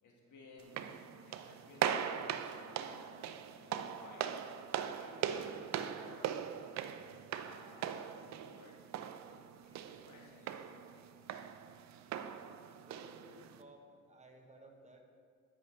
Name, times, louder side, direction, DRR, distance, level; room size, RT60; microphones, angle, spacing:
voice 1, 0.0-4.3 4.9-5.4 5.9-6.3 7.4-8.7 9.6-11.0, left 3 dB, 80° left, -1 dB, 1.7 m, -58 dB
sound 1, 0.6-13.6, right 9 dB, 65° right, 0.5 m, -41 dB
voice 2, 12.8-15.0, right 1 dB, 25° right, 2 dB, 1.0 m, -57 dB
13.0 x 5.6 x 3.2 m, 2.1 s
cardioid pair, 90°, 30 cm